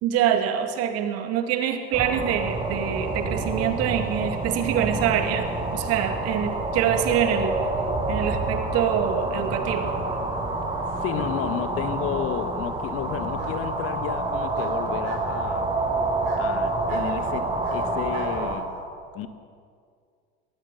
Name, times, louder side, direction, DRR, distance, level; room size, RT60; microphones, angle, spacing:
voice 1, 0.0-7.6 8.1-9.9, right 9 dB, 50° right, 7 dB, 2.2 m, -25 dB
sound 1, 1.9-18.6, right 2 dB, 15° right, 6.6 m, -28 dB
voice 2, 10.9-15.7 16.4-18.8 19.1-19.3, left 9 dB, 45° left, 10 dB, 1.5 m, -32 dB
Bark, 13.3-13.6 14.5-15.3 16.2-16.5 16.9-17.1 17.6-18.3, right 5 dB, 70° right, 4.8 m, -42 dB
21.5 x 18.0 x 6.9 m, 2.2 s
figure-of-eight pair, 75°, 31 cm